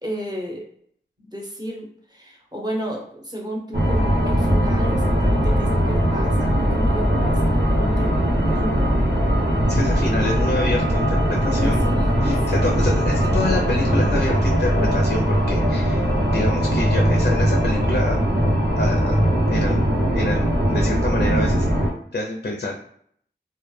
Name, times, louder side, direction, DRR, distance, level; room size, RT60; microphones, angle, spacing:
voice 1, 0.0-0.6 1.2-8.9 11.3-13.5, equal, 20° right, -2 dB, 0.8 m, -32 dB
sound 1, 3.7-21.9, equal, 65° right, 0.7 m, -20 dB
voice 2, 9.7-11.9 12.2-16.1 16.3-18.3 18.8-19.2 19.5-19.8 20.1-21.7 22.1-22.8, left 2 dB, 60° left, 1 dB, 0.4 m, -27 dB
2.2 x 2.0 x 3.1 m, 0.63 s
wide cardioid pair, 55°, 19 cm